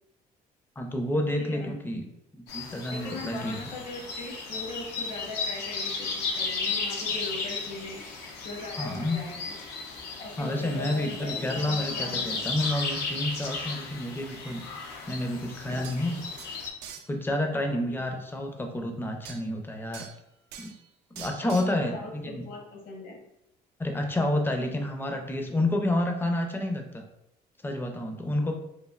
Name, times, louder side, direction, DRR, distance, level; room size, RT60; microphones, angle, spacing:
voice 1, 0.8-2.0 2.3-3.6 8.8-9.2 10.4-14.6 15.1-16.2 17.1-20.1 20.6-20.7 21.1-22.4 23.8-27.0 27.6-28.5, left 1 dB, 10° left, 4 dB, 0.4 m, -29 dB
voice 2, 1.4-1.7 2.9-8.0 8.4-9.6 10.2-12.5 15.9-16.0 17.4-18.2 21.4-23.2, left 2 dB, 55° left, 0 dB, 0.9 m, -40 dB
sound 1, 2.5-16.7, left 4 dB, 80° left, 0.6 m, -34 dB
sound 2, 15.5-15.6 15.8-16.0 16.4-17.1 19.2-19.4 19.9-20.2 20.5-20.8 21.2-21.8, right 7 dB, 85° right, 0.4 m, -43 dB
3.1 x 2.4 x 2.4 m, 0.81 s
cardioid pair, 110°, 17 cm